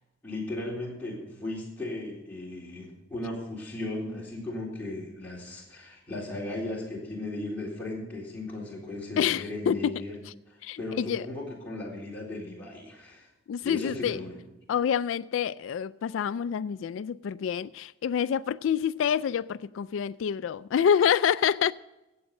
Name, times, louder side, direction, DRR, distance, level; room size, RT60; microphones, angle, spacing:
voice 1, 0.2-10.1 10.5-13.3 13.6-14.3, left 2 dB, 10° left, 3.8 m, -36 dB
voice 2, 9.2-10.3 10.6-11.3 13.5-14.2 14.7-21.7, left 8 dB, 90° left, 0.3 m, -27 dB
15.0 x 8.5 x 5.3 m
head